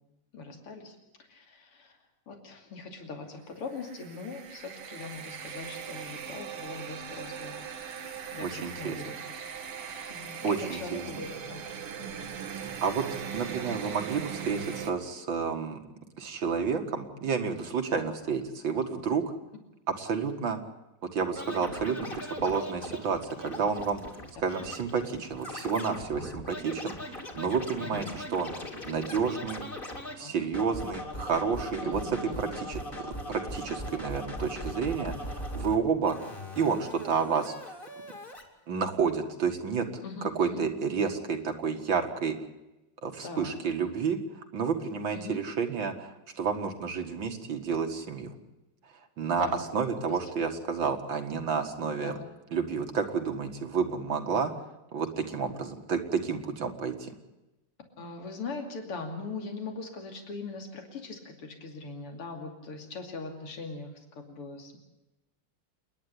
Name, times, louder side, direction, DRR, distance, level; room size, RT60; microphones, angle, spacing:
voice 1, 0.3-1.0 1.3-2.0 2.3-7.7 8.3-9.2 9.9-12.3 27.8-28.1 30.2-30.3 31.8-32.5 40.0-40.7 43.2-43.6 45.1-45.4 49.3-49.6 50.1-50.2 52.0-52.2 58.0-64.8, left 3 dB, 90° left, 4 dB, 3.6 m, -41 dB
sound 1, 3.7-14.9, right 7 dB, 85° right, 2.6 m, -40 dB
voice 2, 8.4-9.0 10.4-11.0 12.8-13.1 13.3-15.8 16.2-19.2 20.0-20.6 21.1-24.0 24.4-28.5 28.9-29.6 30.2-32.0 32.4-36.2 36.6-37.8 38.7-39.9 40.4-42.4 43.0-44.2 44.5-48.4 49.2-49.5 49.7-52.1 52.5-54.5 54.9-57.2, right 6 dB, 60° right, 5 dB, 2.5 m, -30 dB
Scratching (performance technique), 21.4-30.2 30.5-35.8 36.1-38.4, left 1 dB, 25° left, 2.7 m, -40 dB
28.5 x 11.0 x 10.0 m, 0.98 s
omnidirectional pair, 2.4 m